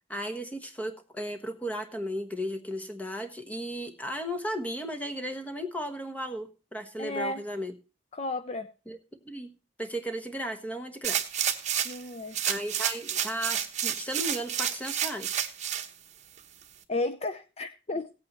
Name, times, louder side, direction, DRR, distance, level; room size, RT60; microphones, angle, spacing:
voice 1, 0.1-7.7 8.9-9.0 9.2-9.5 9.8-11.2 12.4-15.4, equal, 10° left, 6 dB, 1.2 m, -35 dB
voice 2, 7.0-7.4 8.1-8.7 11.8-12.4 16.9-18.1, left 2 dB, 35° left, 10 dB, 0.6 m, -33 dB
sound 1, 11.0-12.0 12.3-15.9 16.4-16.5, right 9 dB, 40° right, 1.1 m, -30 dB
17.0 x 8.5 x 3.0 m, 0.32 s
head